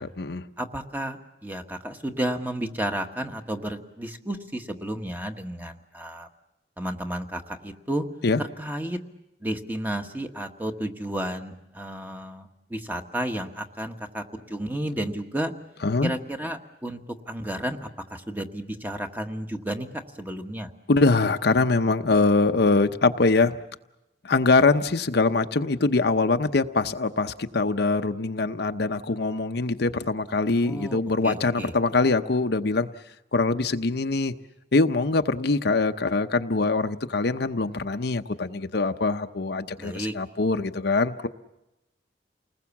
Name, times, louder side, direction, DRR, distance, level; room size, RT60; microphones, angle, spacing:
voice 1, 0.0-0.4 8.2-8.4 15.8-16.1 20.9-23.6 24.2-32.9 33.3-34.3 34.7-41.3, left 3 dB, 60° left, 8 dB, 0.8 m, -23 dB
voice 2, 0.6-6.3 6.8-8.0 8.4-9.0 9.4-15.5 16.0-17.0 17.3-19.9 20.2-20.7 30.6-31.7 39.8-40.1, right 1 dB, 10° right, 5 dB, 1.4 m, -32 dB
29.0 x 20.0 x 7.2 m, 0.92 s
head